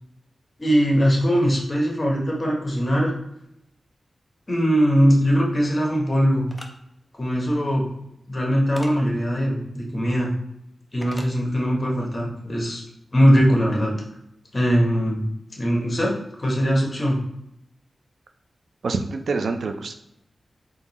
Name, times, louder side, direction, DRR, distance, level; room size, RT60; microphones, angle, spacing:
voice 1, 0.6-3.1 4.5-6.4 7.2-7.9 8.3-10.3 10.9-12.8 13.1-13.9 14.5-15.2 15.6-16.1 16.4-17.2, equal, 25° left, -2 dB, 1.1 m, -20 dB
sound 1, 6.5-6.7 8.8-8.9 11.0-11.3, equal, 5° left, 0.5 m, -39 dB
voice 2, 18.8-19.9, right 4 dB, 70° right, 6 dB, 0.4 m, -26 dB
3.7 x 2.7 x 4.1 m, 0.79 s
wide cardioid pair, 145°, 0 cm